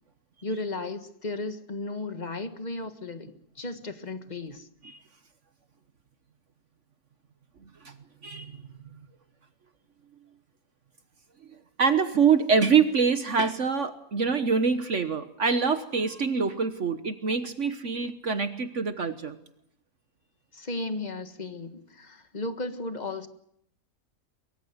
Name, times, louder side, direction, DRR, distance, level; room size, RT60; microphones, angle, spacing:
voice 1, 0.4-4.7 20.5-23.3, left 2 dB, 30° left, 9 dB, 1.7 m, -35 dB
voice 2, 11.8-19.4, right 5 dB, 55° right, 10 dB, 1.5 m, -25 dB
23.5 x 23.0 x 8.0 m, 0.71 s
omnidirectional pair, 1.6 m